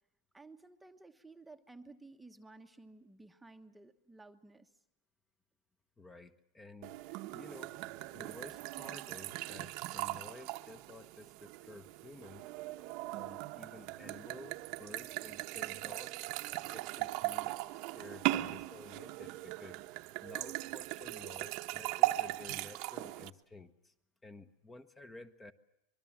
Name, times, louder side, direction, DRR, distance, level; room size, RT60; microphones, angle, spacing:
voice 1, 0.3-4.7, right 3 dB, 5° right, 5 dB, 1.2 m, -55 dB
voice 2, 6.0-7.8 8.1-12.4 13.1-16.2 16.6-17.5 17.9-19.8 20.2-23.9 24.2-25.5, left 2 dB, 15° left, 10 dB, 1.3 m, -53 dB
sound 1, 6.8-23.3, right 18 dB, 55° right, 1.0 m, -39 dB
24.5 x 22.5 x 7.4 m, 0.85 s
supercardioid pair, 125°, 0 cm